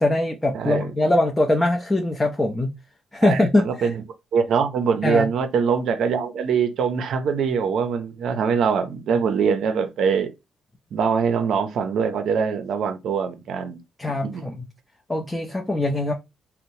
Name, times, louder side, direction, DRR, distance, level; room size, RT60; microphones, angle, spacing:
voice 1, 0.0-2.7 3.1-3.9 5.0-5.3 14.0-14.7 15.1-16.1, left 1 dB, 15° left, 0.5 m, -22 dB
voice 2, 0.5-0.9 3.2-3.9 4.3-10.3 10.9-13.8 14.2-14.5, right 6 dB, 70° right, 0.5 m, -23 dB
2.8 x 2.0 x 2.6 m
cardioid pair, 80°, 0 cm